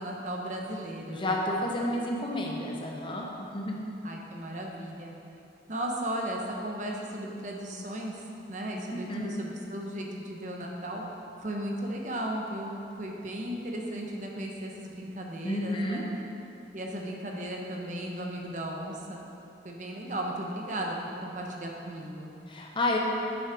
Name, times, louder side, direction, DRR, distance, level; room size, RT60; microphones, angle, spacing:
voice 1, 0.0-1.4 4.0-5.1 5.7-11.0 11.4-16.0 16.7-19.2 19.6-20.9 21.2-22.3, right 1 dB, 40° right, 0 dB, 0.8 m, -36 dB
voice 2, 1.1-3.8 8.9-9.3 15.4-16.0 22.5-23.0, left 1 dB, 25° left, -1 dB, 0.8 m, -30 dB
7.8 x 6.4 x 4.8 m, 2.8 s
head